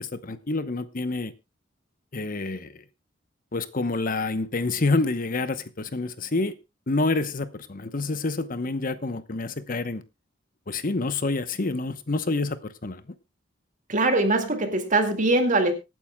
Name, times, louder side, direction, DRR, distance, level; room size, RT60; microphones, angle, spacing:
voice 1, 0.0-1.3 2.1-2.8 3.5-6.5 6.9-10.0 10.7-13.0, left 3 dB, 45° left, 0.9 m, -28 dB
voice 2, 13.9-15.7, right 2 dB, 40° right, 2.1 m, -22 dB
25.0 x 9.4 x 2.3 m
head